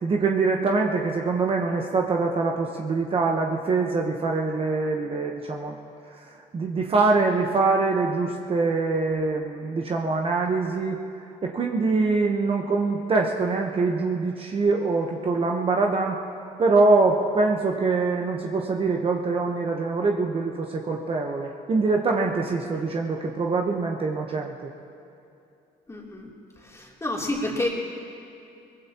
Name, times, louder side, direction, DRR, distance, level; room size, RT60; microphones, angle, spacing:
voice 1, 0.0-5.8 6.1-11.0 11.4-16.2 16.6-24.7, right 3 dB, 35° right, 1 dB, 1.1 m, -24 dB
voice 2, 25.9-26.3 26.6-27.7, left 1 dB, 15° left, -3 dB, 3.2 m, -29 dB
22.5 x 20.5 x 3.0 m, 2.6 s
cardioid pair, 110°, 17 cm